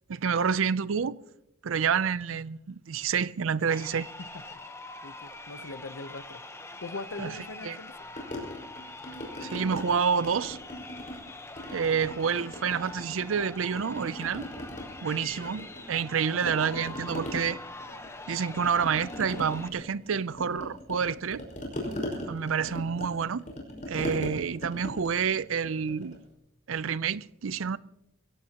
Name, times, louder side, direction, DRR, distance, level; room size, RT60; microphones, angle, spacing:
voice 1, 0.1-1.2 1.6-4.1 7.2-7.4 7.6-7.8 9.4-10.6 11.7-14.5 15.0-17.6 18.3-21.4 22.3-23.4 23.9-26.2 26.7-27.8, right 6 dB, 75° right, 0.5 m, -28 dB
Crowd, 3.6-19.7, left 2 dB, 15° left, 1.0 m, -44 dB
voice 2, 5.0-6.4 6.8-7.9, left 3 dB, 90° left, 0.9 m, -41 dB
sound 1, 8.2-9.8 10.2-11.3 11.6-13.4 13.7-16.1 16.4-26.2, left 1 dB, 40° left, 5.2 m, -39 dB
23.5 x 16.5 x 2.9 m
head